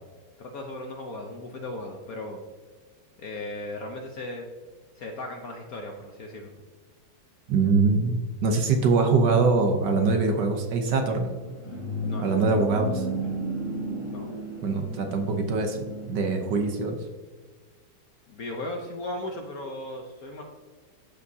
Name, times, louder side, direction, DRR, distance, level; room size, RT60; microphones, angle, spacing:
voice 1, 0.4-2.4 3.2-4.5 5.0-6.5 12.1-12.4 14.1-14.3 18.3-20.4, left 1 dB, 60° left, 2 dB, 1.0 m, -36 dB
voice 2, 7.5-11.3 12.2-13.0 14.6-17.0, right 4 dB, 65° right, 4 dB, 1.3 m, -23 dB
sound 1, 11.3-16.8, right 1 dB, 85° left, 2.9 m, -34 dB
14.0 x 5.0 x 2.7 m, 1.4 s
omnidirectional pair, 2.2 m